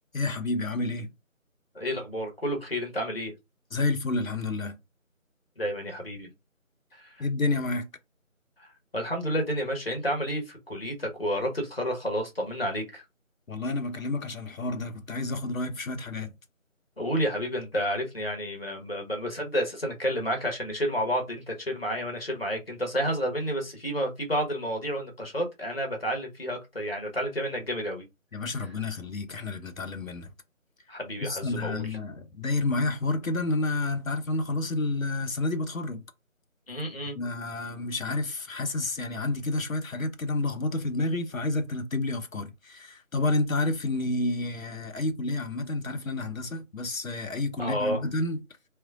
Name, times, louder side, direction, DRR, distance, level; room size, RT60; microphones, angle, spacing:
voice 1, 0.1-1.1 3.7-4.8 7.2-7.9 13.5-16.3 28.3-30.3 31.2-36.0 37.2-48.4, left 2 dB, 75° left, 0.9 m, -30 dB
voice 2, 1.7-3.3 5.6-6.3 6.9-7.2 8.6-8.7 8.9-13.0 17.0-28.0 30.9-31.8 36.7-37.1 47.6-48.0, equal, 45° left, 1.1 m, -30 dB
3.6 x 3.0 x 2.4 m
figure-of-eight pair, 175°, 41 cm